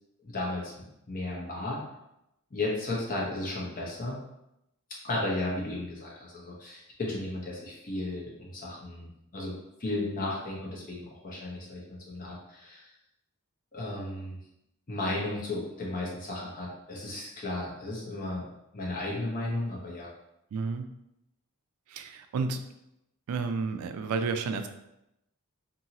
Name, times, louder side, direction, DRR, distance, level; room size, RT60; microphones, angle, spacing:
voice 1, 0.2-0.7 1.1-1.8 2.5-4.2 5.0-9.5 9.8-12.9 13.7-14.4 14.9-18.4 18.7-20.1, left 2 dB, 40° left, -4 dB, 0.7 m, -34 dB
voice 2, 20.5-20.9 21.9-22.6 23.3-24.7, right 4 dB, 80° right, 8 dB, 0.3 m, -31 dB
2.7 x 2.7 x 2.8 m, 0.85 s
head